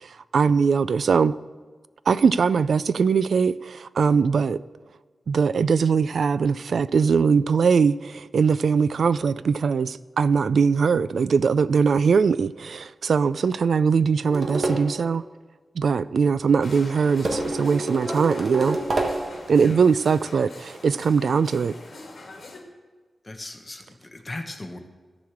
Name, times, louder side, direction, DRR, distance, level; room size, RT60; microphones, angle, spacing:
voice 1, 0.3-1.3 2.1-4.6 5.3-15.2 15.8-18.8 19.5-21.7, right 5 dB, 75° right, 0.3 m, -21 dB
sound 1, 14.3-15.0 17.2-19.4, right 2 dB, 50° right, 1.4 m, -27 dB
sound 2, 16.6-22.6, left 2 dB, 55° left, 2.1 m, -43 dB
voice 2, 23.2-24.8, left 2 dB, 25° left, 1.1 m, -38 dB
14.0 x 4.9 x 7.2 m
wide cardioid pair, 160°, 0 cm